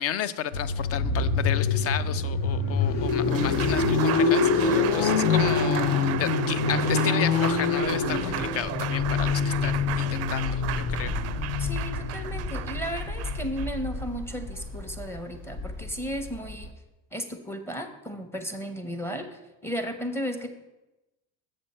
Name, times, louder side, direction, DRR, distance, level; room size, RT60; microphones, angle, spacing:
voice 1, 0.0-11.2, left 9 dB, 40° left, 16 dB, 0.4 m, -33 dB
sound 1, 0.5-16.7, left 4 dB, 60° left, 0.9 m, -26 dB
Applause, 2.9-15.2, right 12 dB, 40° right, 0.4 m, -34 dB
voice 2, 11.6-16.7 17.1-20.5, equal, 5° left, 6 dB, 0.9 m, -34 dB
7.7 x 6.2 x 4.3 m, 1.0 s
supercardioid pair, 85°, 39 cm